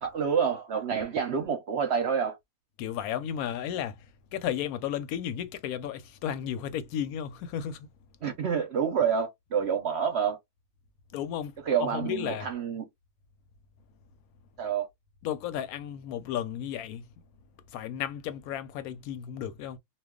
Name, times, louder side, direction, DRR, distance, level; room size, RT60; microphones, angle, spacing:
voice 1, 0.0-2.4 8.2-10.4 11.7-12.9 14.6-14.9, right 7 dB, 60° right, 0.8 m, -28 dB
voice 2, 2.8-4.1 4.3-7.9 11.1-12.5 15.2-17.0 17.7-19.8, left 9 dB, 85° left, 1.0 m, -33 dB
2.3 x 2.3 x 3.5 m
omnidirectional pair, 1.5 m